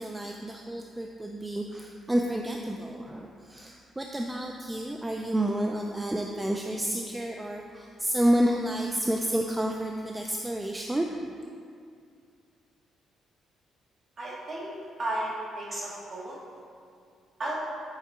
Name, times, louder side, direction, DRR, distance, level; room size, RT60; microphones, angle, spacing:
voice 1, 0.0-11.3, right 1 dB, 10° right, 1 dB, 0.3 m, -30 dB
voice 2, 14.2-14.7 15.0-16.4 17.4-17.5, right 1 dB, 35° right, -5 dB, 1.8 m, -33 dB
8.6 x 4.6 x 3.5 m, 2.3 s
cardioid pair, 125°, 0 cm